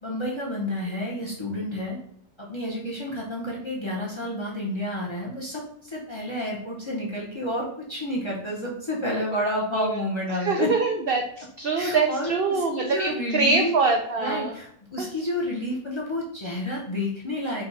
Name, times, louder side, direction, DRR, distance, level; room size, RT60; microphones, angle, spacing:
voice 1, 0.0-2.0 2.4-10.7 11.7-13.7 14.2-17.6, left 1 dB, 30° left, -3 dB, 0.6 m, -30 dB
voice 2, 9.3-10.0 10.3-14.5 15.0-15.1, right 4 dB, 70° right, 2 dB, 0.5 m, -25 dB
5.1 x 2.2 x 3.9 m, 0.68 s
omnidirectional pair, 1.5 m